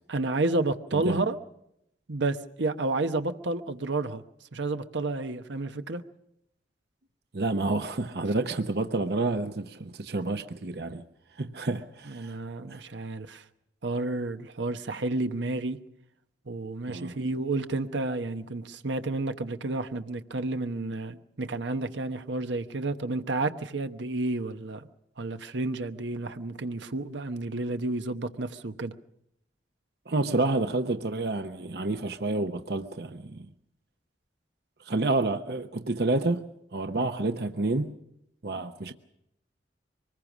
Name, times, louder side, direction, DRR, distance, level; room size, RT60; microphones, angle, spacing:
voice 1, 0.1-1.4 2.1-4.2 4.5-6.0 12.1-13.4 13.8-15.8 16.5-24.9 25.2-28.9 36.9-37.1, right 2 dB, 85° right, 1.0 m, -31 dB
voice 2, 7.3-11.0 11.4-12.3 12.7-12.8 16.9-17.1 30.1-33.5 34.8-37.9 38.4-38.9, right 2 dB, 60° right, 0.8 m, -29 dB
24.5 x 20.0 x 6.2 m
head